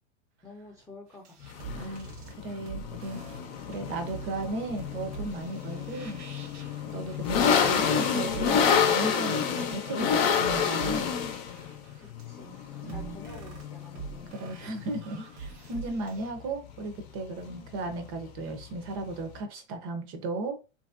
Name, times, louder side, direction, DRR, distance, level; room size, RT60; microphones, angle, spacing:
voice 1, 0.4-1.7 6.8-7.1 12.0-14.7 15.6-15.8 17.5-17.7, left 2 dB, 5° left, 0.6 m, -50 dB
sound 1, 1.1-16.3, right 6 dB, 70° right, 1.0 m, -45 dB
sound 2, 1.4-19.4, left 7 dB, 55° left, 0.7 m, -29 dB
voice 2, 1.7-2.1 2.4-3.2 3.6-6.2 6.9-11.1 12.8-13.2 14.3-20.6, right 2 dB, 35° right, 0.7 m, -36 dB
2.9 x 2.7 x 2.4 m
hypercardioid pair, 115°, 36 cm